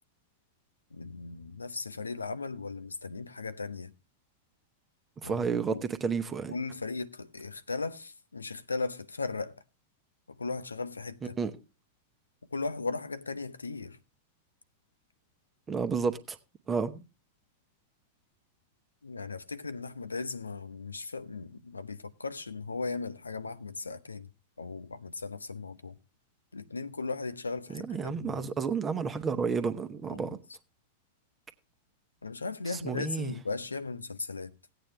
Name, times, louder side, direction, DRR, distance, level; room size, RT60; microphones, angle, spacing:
voice 1, 0.9-3.9 5.2-5.8 6.5-9.6 10.3-11.4 12.5-14.0 19.0-24.3 24.6-26.0 26.5-28.5 30.1-30.4 32.2-34.5, left 3 dB, 80° left, 0.6 m, -37 dB
voice 2, 5.2-6.5 11.4-11.5 15.7-16.4 16.7-17.0 27.8-30.4 32.8-33.3, right 5 dB, 20° right, 1.0 m, -31 dB
16.5 x 9.0 x 3.3 m
figure-of-eight pair, 90°, 0 cm